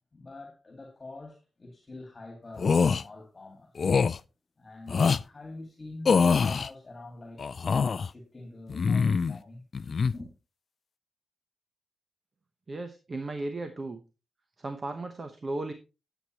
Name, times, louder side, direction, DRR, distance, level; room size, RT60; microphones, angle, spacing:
voice 1, 0.1-3.7 4.6-9.6 10.0-10.3, left 2 dB, 30° left, 2.1 m, -46 dB
sound 1, 2.6-3.0 3.8-4.2 4.9-5.2 6.0-6.7 7.4-8.1 8.7-9.4 9.7-10.1, left 5 dB, 50° left, 0.3 m, -24 dB
voice 2, 12.7-14.0 14.6-15.7, right 2 dB, 40° right, 0.9 m, -35 dB
9.7 x 8.0 x 3.0 m
cardioid pair, 85°, 0 cm